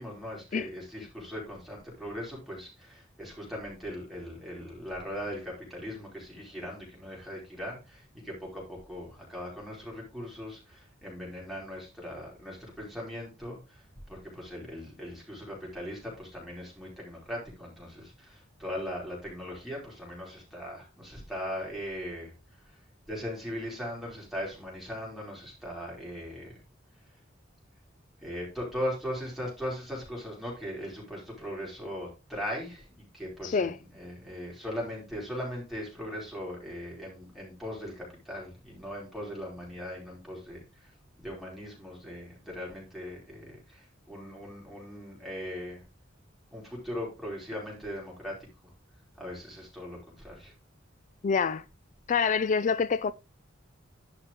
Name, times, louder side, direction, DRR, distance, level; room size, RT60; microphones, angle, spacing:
voice 1, 0.0-26.6 27.1-27.2 28.2-40.9 41.2-45.8 46.5-48.4 48.6-48.7 49.2-50.5, equal, ahead, 5.0 m, -39 dB
voice 2, 33.4-33.8 51.2-51.6 52.1-53.1, left 5 dB, 40° left, 0.3 m, -26 dB
11.0 x 6.1 x 3.7 m
head